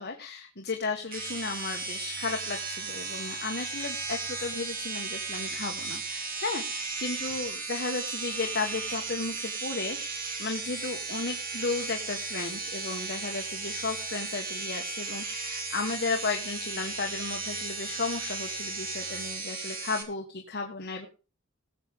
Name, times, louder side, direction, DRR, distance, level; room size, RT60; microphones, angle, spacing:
voice 1, 0.0-10.0 10.4-21.1, left 4 dB, 55° left, 2 dB, 1.6 m, -34 dB
sound 1, 1.1-20.0, right 4 dB, 45° right, 2.3 m, -35 dB
20.0 x 7.6 x 3.7 m, 0.34 s
head